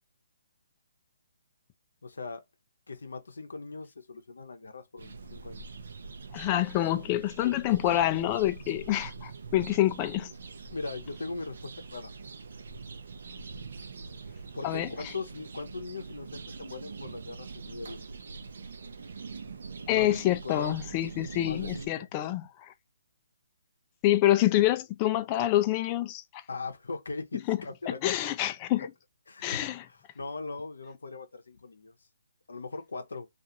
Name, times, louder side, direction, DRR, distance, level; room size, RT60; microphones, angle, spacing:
voice 1, 2.0-2.4 2.9-5.6 10.7-12.1 14.5-18.0 19.9-20.8 21.4-22.1 26.5-28.0 29.3-31.9 32.5-33.3, left 3 dB, 85° left, 0.7 m, -40 dB
sound 1, 5.0-21.9, right 4 dB, 65° right, 0.5 m, -43 dB
voice 2, 6.3-10.3 14.6-14.9 19.9-22.5 24.0-26.2 27.5-27.6 28.0-28.9 29.4-29.8, left 14 dB, 25° left, 0.4 m, -26 dB
2.4 x 2.4 x 2.7 m
hypercardioid pair, 150°, 0 cm